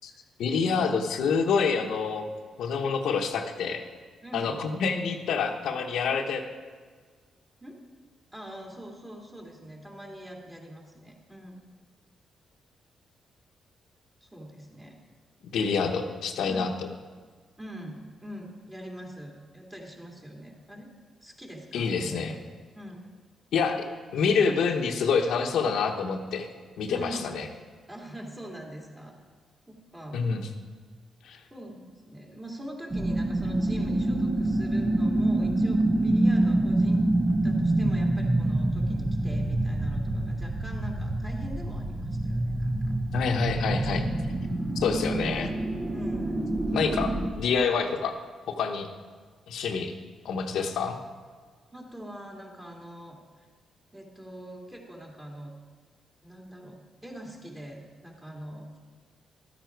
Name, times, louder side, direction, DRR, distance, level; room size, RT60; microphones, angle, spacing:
voice 1, 0.4-2.2 2.6-3.8 4.3-6.4 15.5-16.7 21.7-22.4 23.5-23.8 24.1-26.5 26.8-27.5 30.1-30.4 31.2-31.4 43.1-44.1 44.8-45.5 46.7-48.1 48.5-48.9 49.5-49.9 50.2-51.0, left 5 dB, 80° left, 4 dB, 1.0 m, -27 dB
voice 2, 4.2-4.6 7.6-7.8 8.3-11.6 14.2-15.0 16.5-16.8 17.6-20.9 21.2-22.4 22.7-23.1 26.9-27.3 27.9-29.2 29.7-30.2 31.5-37.1 37.4-42.9 44.9-45.2 45.9-46.8 51.7-53.5 53.9-55.5 56.2-58.7, right 1 dB, 15° right, -1 dB, 2.8 m, -43 dB
sound 1, 32.9-47.3, right 1 dB, 30° right, 1.3 m, -26 dB
12.5 x 9.4 x 4.6 m, 1.6 s
cardioid pair, 80°, 0 cm